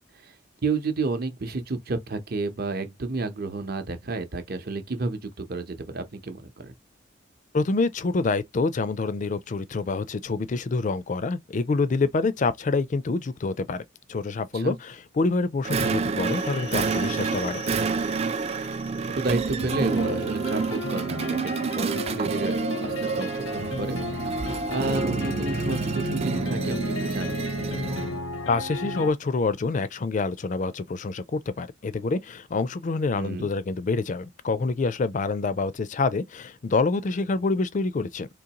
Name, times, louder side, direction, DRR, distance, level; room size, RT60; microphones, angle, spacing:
voice 1, 0.6-6.7 14.5-14.7 19.0-27.5 33.2-33.5, right 3 dB, 50° right, 0.8 m, -31 dB
voice 2, 7.5-17.6 28.5-38.3, left 3 dB, 40° left, 0.4 m, -27 dB
sound 1, 15.7-28.2, right 4 dB, 30° right, 0.3 m, -28 dB
sound 2, 16.2-29.1, left 3 dB, 90° left, 0.7 m, -35 dB
3.8 x 3.0 x 2.9 m
head